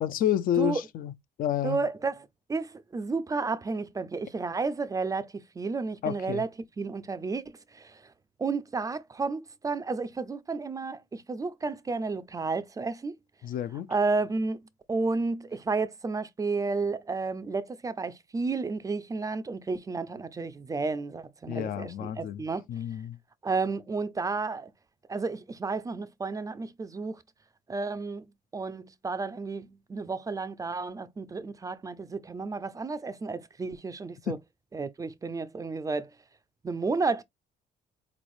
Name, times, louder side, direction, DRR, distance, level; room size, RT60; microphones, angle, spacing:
voice 1, 0.0-1.1 1.4-1.8 6.0-6.4 13.4-13.9 21.5-22.4 22.7-23.2 34.3-34.4, left 11 dB, 55° left, 0.4 m, -29 dB
voice 2, 1.6-6.5 6.8-8.0 8.4-13.1 13.9-14.6 14.9-22.7 23.4-24.7 25.1-27.2 27.7-28.3 28.5-34.4 34.7-36.1 36.6-37.2, right 4 dB, 20° right, 0.4 m, -32 dB
3.9 x 3.1 x 2.5 m
cardioid pair, 110°, 17 cm